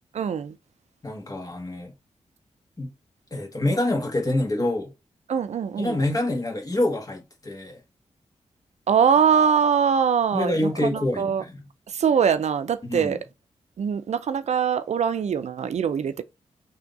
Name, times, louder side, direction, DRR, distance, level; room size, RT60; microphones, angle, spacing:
voice 1, 0.1-0.6 5.3-6.0 8.9-11.4 11.9-13.2 13.8-16.2, right 7 dB, 65° right, 0.4 m, -22 dB
voice 2, 1.0-1.9 2.8-2.9 3.3-4.9 5.8-7.8 10.3-11.5 12.8-13.2, left 1 dB, 30° left, 1.4 m, -26 dB
3.4 x 2.7 x 3.9 m
cardioid pair, 65°, 12 cm